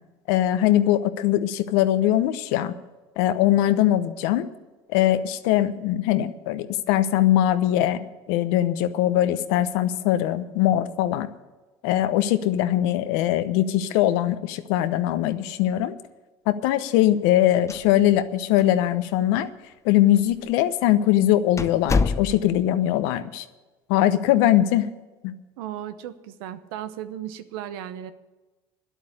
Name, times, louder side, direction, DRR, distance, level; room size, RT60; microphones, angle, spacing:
voice 1, 0.3-2.7 3.2-4.5 4.9-11.3 11.8-16.0 16.5-19.5 19.8-23.4 23.9-24.9 25.2-25.3, left 13 dB, 80° left, 12 dB, 0.9 m, -21 dB
sound 1, 17.5-18.3 18.6-18.7 19.4-19.5 20.3-20.5 20.9-21.0 21.6-22.7, left 4 dB, 25° left, 0.7 m, -26 dB
voice 2, 25.6-28.1, right 11 dB, 85° right, 11 dB, 0.9 m, -35 dB
11.0 x 8.3 x 9.9 m, 1.2 s
supercardioid pair, 85°, 12 cm